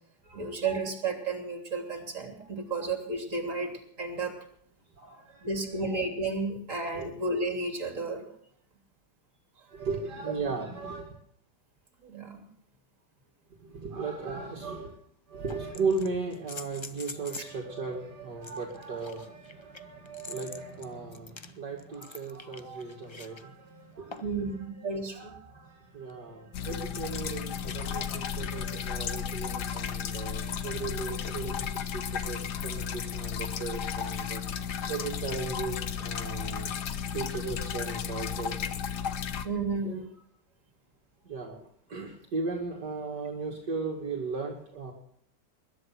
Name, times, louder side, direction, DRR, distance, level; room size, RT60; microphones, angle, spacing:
voice 1, 0.3-3.7 4.0-4.3 5.4-8.3 12.0-12.5 24.2-25.3 36.3-36.4 39.4-40.1, right 3 dB, 45° right, 3 dB, 3.6 m, -32 dB
voice 2, 2.4-2.9 5.0-6.1 6.9-7.1 9.7-11.2 13.6-15.0 15.3-34.4 34.9-36.7 37.1-38.7 39.8-40.0 41.2-44.9, right 4 dB, 65° right, 0 dB, 2.9 m, -37 dB
sound 1, 14.4-14.5 15.5-17.6 18.4-23.4 24.1-24.5 26.1-26.2, left 3 dB, 50° left, 0.3 m, -45 dB
sound 2, 26.5-39.5, left 8 dB, 70° left, 1.6 m, -34 dB
21.0 x 11.0 x 6.1 m, 0.65 s
omnidirectional pair, 1.9 m